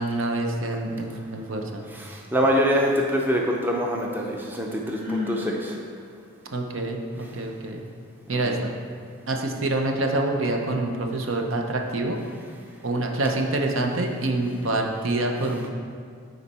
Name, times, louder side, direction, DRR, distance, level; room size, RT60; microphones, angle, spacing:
voice 1, 0.0-1.8 6.5-7.8 8.3-8.7 9.3-12.2 12.8-15.7, right 2 dB, 70° right, 2 dB, 0.7 m, -26 dB
voice 2, 1.9-5.8 8.3-8.6, equal, 10° right, -1 dB, 0.5 m, -25 dB
Sigh, 4.8-5.5, left 3 dB, 35° right, 1.7 m, -31 dB
9.7 x 4.1 x 4.3 m, 2.2 s
head